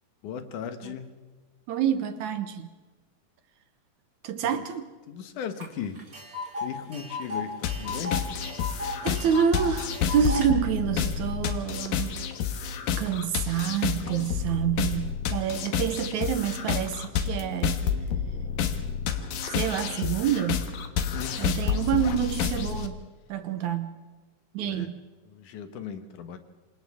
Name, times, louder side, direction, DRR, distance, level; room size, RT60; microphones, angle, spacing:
voice 1, 0.2-1.1 4.4-4.6 5.1-6.0 6.6-8.3 21.1-21.4 24.6-24.9 25.3-26.4, left 8 dB, 65° left, 8 dB, 2.6 m, -37 dB
voice 2, 1.7-2.7 4.2-4.9 9.0-12.1 13.0-17.8 19.5-20.7 21.4-23.0 23.3-23.9 24.5-25.0, right 8 dB, 70° right, 9 dB, 2.1 m, -27 dB
Tick, 5.6-5.7 6.0-10.5, left 3 dB, 25° right, 3.2 m, -35 dB
sound 1, 7.6-22.9, left 7 dB, 85° left, 3.0 m, -29 dB
28.0 x 26.0 x 3.6 m, 1.3 s
omnidirectional pair, 4.0 m